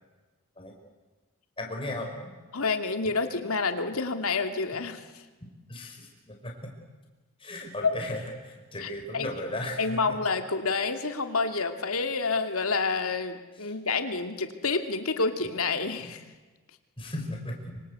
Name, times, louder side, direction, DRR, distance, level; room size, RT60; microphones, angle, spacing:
voice 1, 1.6-2.1 3.0-3.1 4.7-4.8 5.7-6.7 7.4-10.0 16.0-16.1 17.0-17.8, left 1 dB, 25° left, 1 dB, 5.1 m, -36 dB
voice 2, 2.5-5.0 7.8-7.9 8.8-9.3 9.8-16.2, left 4 dB, 90° left, 6 dB, 2.5 m, -28 dB
26.0 x 25.0 x 8.2 m, 1.3 s
head